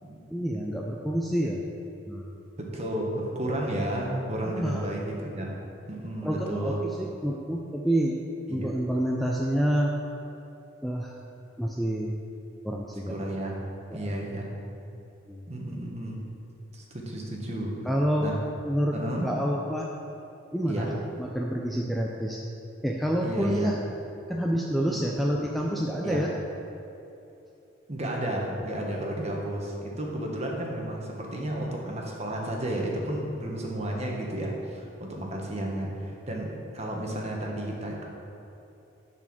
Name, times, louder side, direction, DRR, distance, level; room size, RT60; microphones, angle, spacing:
voice 1, 0.3-1.7 2.1-2.3 4.5-4.8 6.2-8.2 8.5-9.9 10.8-11.2 11.6-12.1 12.6-13.2 13.9-14.1 15.3-15.5 17.9-18.3 18.6-19.0 19.2-19.9 20.5-22.4 22.8-23.8 24.3-26.3, equal, ahead, -2 dB, 0.4 m, -28 dB
voice 2, 2.6-5.6 5.9-6.8 8.5-8.7 13.1-13.6 13.9-14.5 15.5-16.2 16.7-17.8 18.2-18.4 18.9-19.3 20.7-20.9 23.2-23.8 24.9-25.1 26.0-26.3 27.9-38.0, right 1 dB, 35° right, -1 dB, 1.3 m, -32 dB
10.5 x 4.6 x 6.1 m, 2.9 s
head